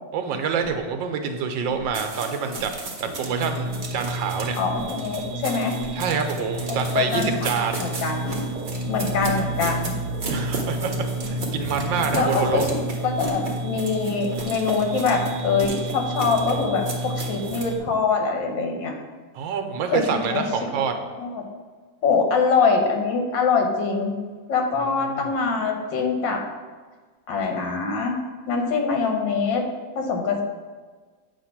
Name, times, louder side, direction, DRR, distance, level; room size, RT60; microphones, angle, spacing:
voice 1, 0.1-2.7 3.0-4.6 5.9-7.8 10.3-12.6 19.3-20.9 25.1-25.3, right 6 dB, 85° right, 5 dB, 1.4 m, -27 dB
sound 1, 0.6-0.8 1.7-1.9 2.5-2.7 3.6-3.8 4.7-4.9 5.8-6.0 7.1-7.3 8.3-8.5 9.2-9.4 10.2-10.4 11.2-11.4 12.1-12.3 13.2-13.4 14.4-14.5 15.6-15.8, equal, 15° left, 1.2 m, -35 dB
sound 2, 1.9-17.7, right 3 dB, 45° right, 0.6 m, -36 dB
sound 3, 3.2-17.8, right 1 dB, 70° right, 1.2 m, -31 dB
voice 2, 4.6-5.8 6.7-7.5 7.8-8.2 8.9-9.9 12.1-18.9 19.9-20.9 21.2-21.4 22.0-24.1 24.5-26.4 27.3-28.2 28.5-29.6 29.9-30.4, left 4 dB, 80° left, 2 dB, 1.7 m, -24 dB
7.7 x 2.9 x 5.8 m, 1.4 s
omnidirectional pair, 2.0 m